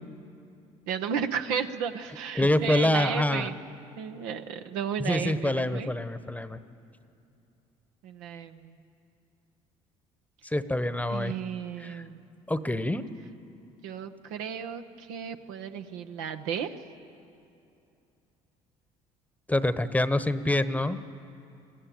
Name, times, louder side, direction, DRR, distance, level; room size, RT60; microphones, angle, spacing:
voice 1, 0.9-3.6 4.0-5.9 8.0-8.8 11.1-12.3 13.8-16.7, right 7 dB, 80° right, 7 dB, 1.0 m, -33 dB
voice 2, 2.4-3.5 5.0-6.6 10.4-11.3 11.8-12.0 12.5-13.1 19.5-21.0, left 1 dB, 10° left, 13 dB, 1.0 m, -26 dB
21.5 x 14.5 x 9.2 m, 2.7 s
hypercardioid pair, 60°, 16 cm